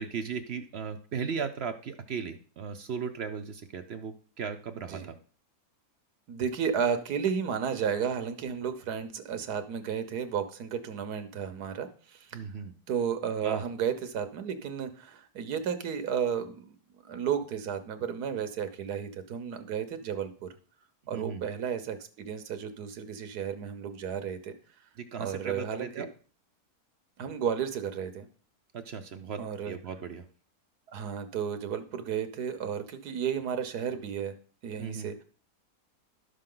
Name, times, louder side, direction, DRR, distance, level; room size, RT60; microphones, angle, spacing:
voice 1, 0.0-5.2 12.3-12.7 13.4-13.6 21.1-21.5 25.0-26.1 28.7-30.2 34.8-35.1, right 6 dB, 60° right, 7 dB, 0.7 m, -36 dB
voice 2, 6.3-12.4 12.9-16.7 17.0-20.5 21.1-24.5 25.2-26.1 27.2-28.3 29.4-29.7 30.9-34.3 34.6-35.2, right 7 dB, 75° right, 9 dB, 1.5 m, -33 dB
11.5 x 6.6 x 3.8 m, 0.41 s
omnidirectional pair, 1.7 m